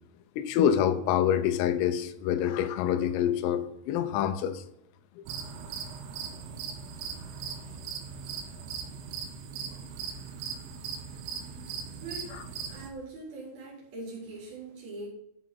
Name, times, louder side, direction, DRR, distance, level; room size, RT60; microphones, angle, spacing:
voice 1, 0.4-4.6 5.2-5.3 12.3-12.4, left 9 dB, 85° left, 9 dB, 3.5 m, -26 dB
sound 1, 5.3-12.9, right 6 dB, 90° right, 3.9 m, -39 dB
voice 2, 12.0-15.1, right 2 dB, 50° right, -5 dB, 5.4 m, -42 dB
13.5 x 5.9 x 6.1 m, 0.78 s
omnidirectional pair, 5.8 m